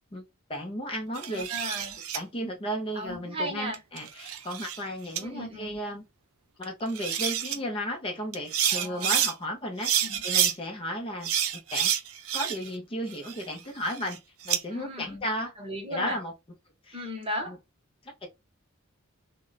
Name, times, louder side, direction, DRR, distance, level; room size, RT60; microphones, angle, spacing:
voice 1, 0.1-1.5 2.1-6.1 6.6-9.9 10.2-11.3 11.7-11.9 12.3-15.5 15.9-16.3 16.8-17.1 17.5-17.6 18.0-18.3, equal, 25° left, 0.5 m, -34 dB
voice 2, 1.2-2.0 2.9-3.8 5.2-5.8 8.7-9.2 10.0-10.2 14.7-15.2 15.6-16.2 16.9-17.6, equal, 25° right, 0.9 m, -36 dB
sound 1, 1.2-2.2 3.7-4.8 5.2-5.3 6.6-6.7 6.9-7.6 8.3-9.3 9.8-10.5 11.2-12.8 13.1-14.6, right 9 dB, 80° right, 0.5 m, -28 dB
2.3 x 2.1 x 3.8 m
head